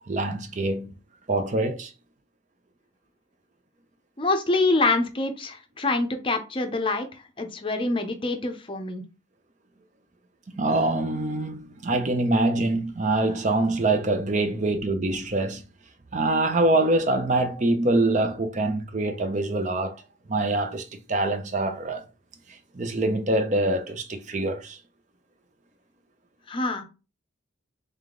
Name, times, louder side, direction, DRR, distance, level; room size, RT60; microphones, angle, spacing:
voice 1, 0.1-1.0 1.3-1.9 10.5-15.7 16.1-20.0 20.3-22.1 22.5-24.8, right 2 dB, 40° right, 0.5 m, -25 dB
voice 2, 4.2-7.1 7.4-9.0 26.5-26.8, left 2 dB, 25° left, 0.6 m, -25 dB
3.5 x 3.3 x 3.7 m
head